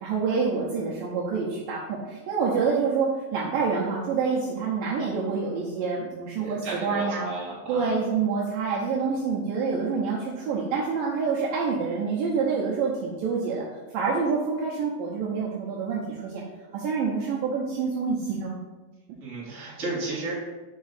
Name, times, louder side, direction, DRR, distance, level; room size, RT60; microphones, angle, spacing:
voice 1, 0.0-7.2 7.7-13.6 13.9-16.4 16.7-18.6, right 5 dB, 75° right, -4 dB, 2.2 m, -27 dB
voice 2, 6.3-8.1 19.2-20.3, right 2 dB, 30° right, -7 dB, 1.4 m, -33 dB
5.2 x 5.1 x 4.0 m, 1.1 s
omnidirectional pair, 4.6 m